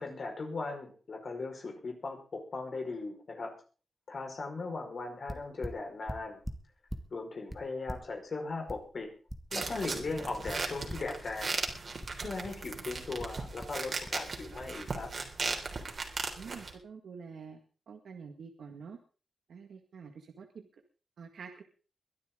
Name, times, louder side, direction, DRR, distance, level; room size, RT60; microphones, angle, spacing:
voice 1, 0.0-3.5 4.1-6.4 7.1-9.1 9.5-11.6 12.2-15.1, left 3 dB, 55° left, 2 dB, 5.1 m, -38 dB
sound 1, 5.0-5.1 5.3-7.1 7.5-9.7 10.1-11.2 11.7-12.6 13.2-13.8 14.0-14.2, equal, 5° left, 1.9 m, -43 dB
sound 2, 9.5-16.7, right 3 dB, 50° right, 3.5 m, -37 dB
voice 2, 16.4-17.6 17.9-19.0 19.5-20.7 21.2-21.6, right 5 dB, 80° right, 4 dB, 2.0 m, -47 dB
22.5 x 12.0 x 3.9 m, 0.37 s
wide cardioid pair, 95°, 0 cm